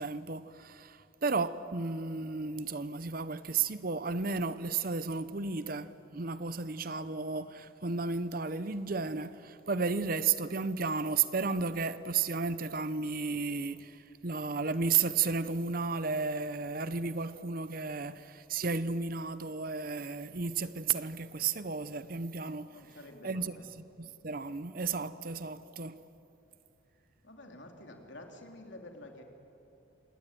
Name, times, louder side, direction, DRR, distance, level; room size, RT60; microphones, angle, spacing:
voice 1, 0.0-22.7 23.2-23.6 24.0-26.0, right 4 dB, 45° right, 0.7 m, -33 dB
voice 2, 22.7-23.7 27.2-29.2, left 1 dB, 65° left, 3.2 m, -49 dB
27.0 x 19.0 x 9.2 m
head